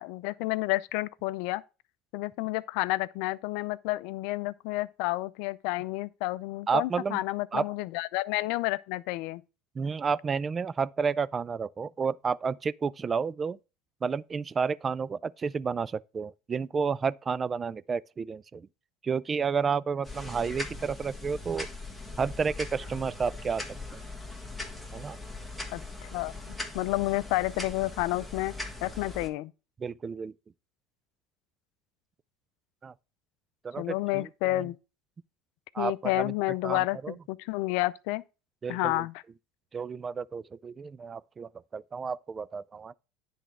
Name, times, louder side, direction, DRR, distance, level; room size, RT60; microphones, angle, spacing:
voice 1, 0.0-1.6 2.1-9.4 25.7-28.5 28.8-29.5 33.8-34.7 35.8-38.2 38.7-39.1, left 19 dB, 70° left, 0.4 m, -30 dB
voice 2, 6.7-7.2 7.5-7.6 9.8-13.6 14.0-18.7 19.0-21.7 22.2-23.6 23.9-24.0 24.9-25.2 29.8-30.3 32.8-32.9 33.6-34.6 35.7-36.3 36.6-37.1 38.6-39.0 39.7-42.9, right 5 dB, 25° right, 0.3 m, -31 dB
sound 1, 20.0-29.3, left 2 dB, 5° left, 1.6 m, -40 dB
10.0 x 3.4 x 6.0 m
supercardioid pair, 100°, 0 cm